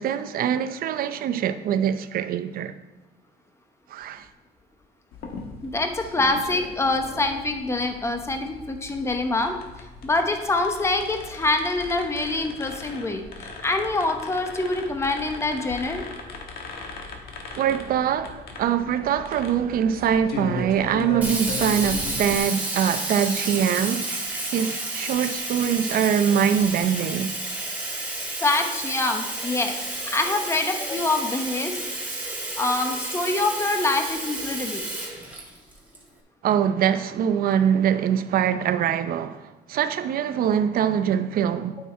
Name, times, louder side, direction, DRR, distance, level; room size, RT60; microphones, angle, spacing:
voice 1, 0.0-2.7 3.9-4.3 17.5-27.3 36.4-41.8, right 8 dB, 60° right, 0.6 m, -23 dB
sound 1, 5.1-22.4, left 3 dB, 65° left, 1.5 m, -38 dB
voice 2, 5.6-9.6 10.0-16.1 28.4-29.8 30.1-31.8 32.6-34.9, left 2 dB, 15° left, 1.0 m, -25 dB
Sink (filling or washing), 21.2-36.0, right 2 dB, 10° right, 2.5 m, -31 dB
9.3 x 5.9 x 4.3 m
cardioid pair, 110°, 17 cm